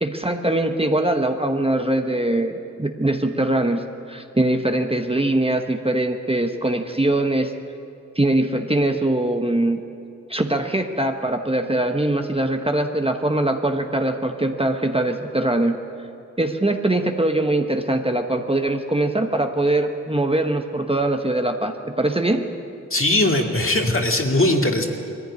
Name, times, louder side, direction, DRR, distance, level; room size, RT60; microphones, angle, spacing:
voice 1, 0.0-2.5 2.8-3.8 4.1-7.5 8.1-9.8 10.3-15.8 16.4-22.5, right 1 dB, 20° right, 5 dB, 1.1 m, -22 dB
voice 2, 22.9-24.9, left 1 dB, 45° left, 2 dB, 2.3 m, -19 dB
21.5 x 15.0 x 9.8 m, 2.6 s
wide cardioid pair, 75°, 31 cm